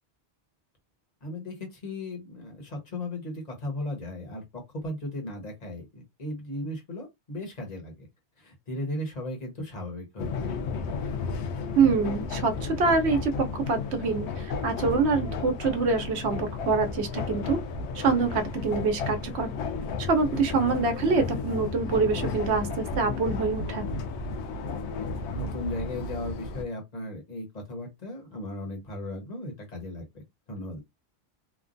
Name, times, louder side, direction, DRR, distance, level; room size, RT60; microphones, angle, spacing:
voice 1, 1.2-8.1 8.4-10.5 25.3-30.2 30.5-30.8, left 1 dB, 40° left, 1.1 m, -36 dB
sound 1, 10.2-26.6, left 4 dB, 90° left, 0.9 m, -33 dB
voice 2, 11.7-17.6 17.9-19.5 20.0-23.9, right 4 dB, 80° right, 1.0 m, -25 dB
3.1 x 2.2 x 2.5 m
omnidirectional pair, 1.1 m